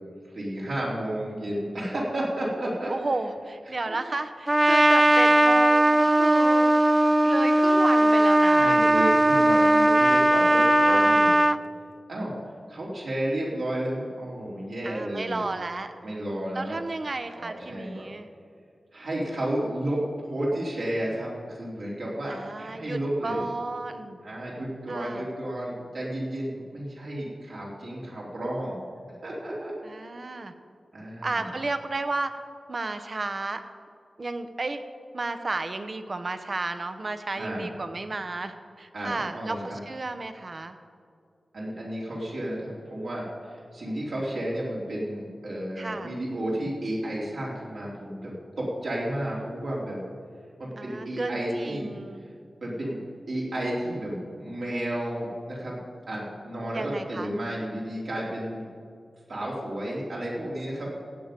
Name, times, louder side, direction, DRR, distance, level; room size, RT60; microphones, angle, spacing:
voice 1, 0.2-2.9 3.7-4.0 8.5-11.4 12.1-12.3 12.7-15.5 16.0-16.8 17.4-18.1 18.9-23.4 24.2-28.8 29.2-29.7 30.9-31.5 37.4-37.7 38.9-39.8 41.5-48.3 48.6-50.0 50.6-51.9 52.2-52.3 52.6-53.0 53.3-55.8 56.1-58.7 59.3-61.0, right 1 dB, 75° right, -6 dB, 3.4 m, -32 dB
voice 2, 2.9-6.7 7.2-8.8 10.8-11.2 14.8-15.9 16.5-18.3 22.3-24.2 24.9-25.3 29.8-30.5 31.2-32.3 32.7-33.6 34.2-34.8 35.1-40.8 45.8-46.2 50.8-52.3 56.7-57.3, right 3 dB, 50° right, 9 dB, 0.9 m, -32 dB
Trumpet, 4.5-11.6, right 1 dB, 20° right, 0.3 m, -19 dB
15.5 x 8.7 x 5.2 m, 2.2 s
wide cardioid pair, 75°, 0 cm